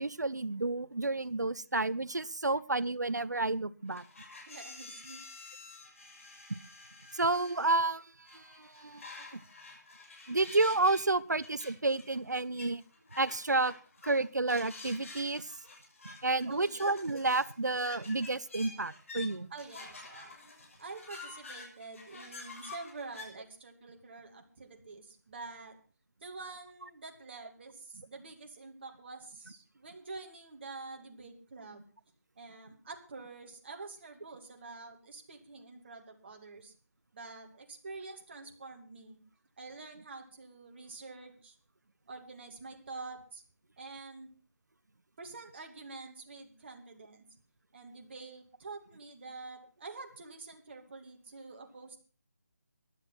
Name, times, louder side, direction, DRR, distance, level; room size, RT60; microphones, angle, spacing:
voice 1, 0.0-4.0 7.1-9.0 9.3-9.4 10.3-12.8 13.2-13.7 14.0-15.5 16.0-19.5, right 2 dB, 85° right, 19 dB, 0.7 m, -30 dB
sound 1, 3.9-7.7 8.2-11.0 11.3-23.3, left 3 dB, 50° left, 6.5 m, -49 dB
voice 2, 4.5-5.2 5.6-5.8 16.4-16.8 19.5-20.4 20.8-25.7 26.2-31.9 32.4-36.7 37.1-39.2 39.6-41.6 42.1-43.4 43.8-44.3 45.2-47.3 47.7-52.0, right 3 dB, 40° right, 3 dB, 2.7 m, -47 dB
15.0 x 11.0 x 5.8 m, 0.38 s
figure-of-eight pair, 160°, 9 cm